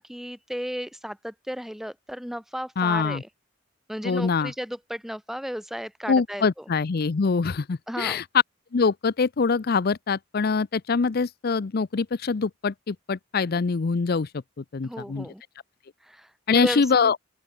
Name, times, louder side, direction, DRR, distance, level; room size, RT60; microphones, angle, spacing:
voice 1, 0.0-3.2 3.9-6.6 7.9-8.2 14.8-15.4 16.0-17.1, equal, ahead, 2.3 m, -34 dB
voice 2, 2.8-3.2 4.0-4.5 6.1-8.2 8.7-14.3 14.6-15.3 16.5-17.2, left 4 dB, 50° left, 0.5 m, -24 dB
open air
head